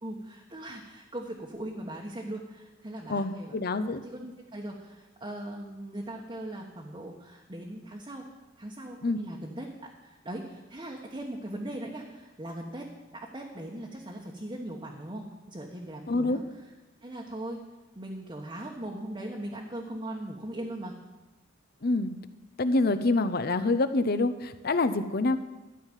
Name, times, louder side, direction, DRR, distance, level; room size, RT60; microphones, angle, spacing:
voice 1, 0.0-3.6 3.9-8.3 8.6-12.9 13.1-16.4 17.0-17.6 18.0-20.9, right 1 dB, 25° right, -2 dB, 1.1 m, -39 dB
voice 2, 3.1-4.0 9.0-9.2 16.1-16.4 21.8-22.1 22.6-25.4, left 2 dB, 50° left, 11 dB, 0.7 m, -26 dB
13.0 x 5.7 x 9.1 m, 1.1 s
head